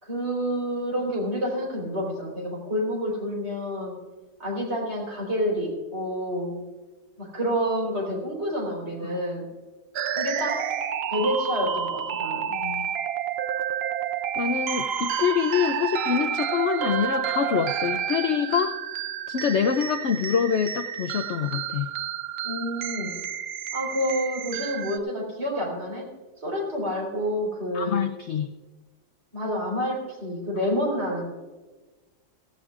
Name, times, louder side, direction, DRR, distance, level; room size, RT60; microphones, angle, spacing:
voice 1, 0.0-3.9 4.4-6.6 7.2-9.5 10.1-10.6 11.1-12.5 22.4-23.2 23.7-26.1 26.4-28.0 29.3-31.2, equal, 40° right, -1 dB, 4.4 m, -28 dB
sound 1, 9.9-25.0, right 8 dB, 70° right, 0.5 m, -30 dB
voice 2, 12.5-12.9 14.4-18.8 19.3-21.9 27.7-28.5, left 7 dB, 65° left, 8 dB, 0.7 m, -25 dB
16.5 x 16.0 x 2.5 m, 1.2 s
omnidirectional pair, 1.7 m